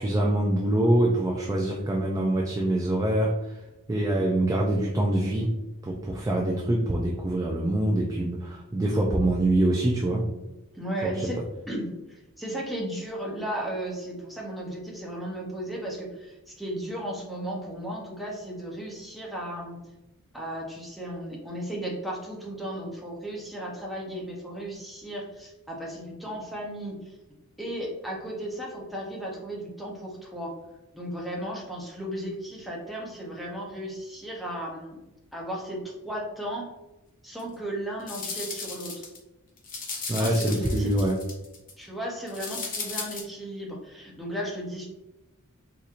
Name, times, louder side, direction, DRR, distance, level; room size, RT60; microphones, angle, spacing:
voice 1, 0.0-3.6 3.9-5.5 5.8-10.3 11.0-11.2 40.1-41.2, right 1 dB, 15° right, -2 dB, 0.3 m, -25 dB
voice 2, 10.7-11.4 11.7-19.8 20.3-27.1 27.6-30.5 30.9-35.0 35.3-36.7 37.2-39.1 40.2-41.0 41.8-44.9, right 1 dB, ahead, -3 dB, 0.7 m, -35 dB
sound 1, 37.4-37.5 38.0-39.2 39.6-41.7 42.3-43.2, left 4 dB, 40° left, 0.7 m, -35 dB
4.1 x 2.8 x 2.4 m, 1.0 s
head